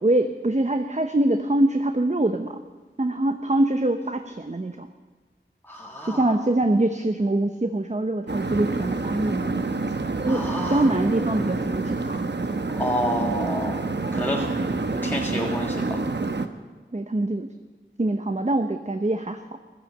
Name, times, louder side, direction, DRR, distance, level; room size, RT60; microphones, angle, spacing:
voice 1, 0.0-2.6 3.0-4.9 6.0-9.8 10.2-12.2 16.9-17.5 18.0-19.4, right 1 dB, 35° right, 7 dB, 0.8 m, -24 dB
voice 2, 5.7-6.3 10.2-10.9 12.7-13.8 14.1-16.0, equal, 10° left, -2 dB, 1.6 m, -29 dB
sound 1, 8.3-16.5, right 3 dB, 60° right, 1.0 m, -27 dB
15.5 x 12.0 x 7.2 m, 1.3 s
wide cardioid pair, 45°, 20 cm